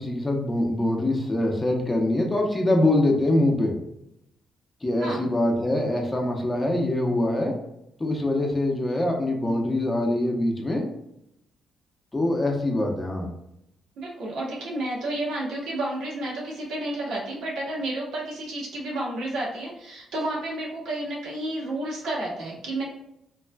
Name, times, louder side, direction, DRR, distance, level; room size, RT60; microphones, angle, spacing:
voice 1, 0.0-3.7 4.8-7.6 8.0-10.8 12.1-13.3, left 1 dB, 20° left, 1 dB, 0.7 m, -24 dB
voice 2, 14.0-22.8, right 1 dB, 85° right, -4 dB, 1.1 m, -31 dB
3.1 x 2.3 x 2.3 m, 0.83 s
cardioid pair, 90°, 0 cm